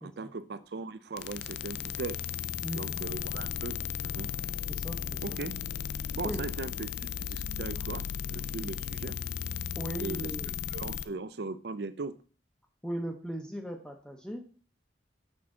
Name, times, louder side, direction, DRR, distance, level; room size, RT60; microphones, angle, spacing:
voice 1, 0.0-2.2 2.7-3.8 4.0-4.3 5.2-5.5 6.1-8.0 8.3-9.2 10.0-10.3 10.7-12.1, right 3 dB, 60° right, 14 dB, 0.5 m, -38 dB
sound 1, 1.2-11.1, left 8 dB, 60° left, 0.3 m, -35 dB
voice 2, 2.6-3.1 4.7-5.2 6.2-6.4 9.8-10.5 12.8-14.5, equal, 5° left, 2 dB, 0.6 m, -38 dB
6.2 x 5.8 x 3.7 m, 0.40 s
head